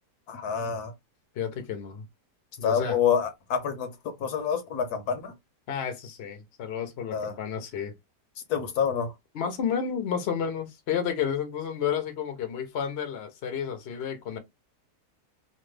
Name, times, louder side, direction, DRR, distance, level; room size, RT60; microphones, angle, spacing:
voice 1, 0.3-0.9 2.6-5.3 7.1-7.4 8.5-9.1, left 7 dB, 70° left, 1.3 m, -27 dB
voice 2, 1.4-2.1 2.6-3.0 5.7-7.9 9.3-14.4, left 7 dB, 50° left, 0.8 m, -31 dB
3.1 x 2.2 x 3.2 m
omnidirectional pair, 1.8 m